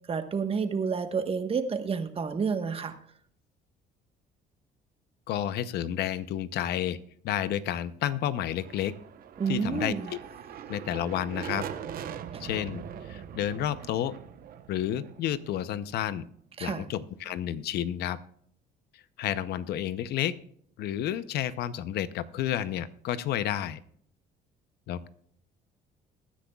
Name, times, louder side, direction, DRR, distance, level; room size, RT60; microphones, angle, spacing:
voice 1, 0.1-2.9 9.4-10.1 12.3-12.4 16.6-16.9, right 5 dB, 35° right, 8 dB, 1.2 m, -30 dB
voice 2, 5.3-7.0 7.2-8.9 9.5-10.2 10.7-11.7 12.4-14.2 14.7-16.2 16.6-18.2 18.9-20.4 20.8-23.8 24.9-25.1, left 11 dB, 75° left, 14 dB, 0.7 m, -31 dB
sound 1, 8.4-16.2, right 8 dB, 60° right, 0.9 m, -42 dB
21.0 x 10.0 x 2.3 m, 0.64 s
cardioid pair, 110°, 17 cm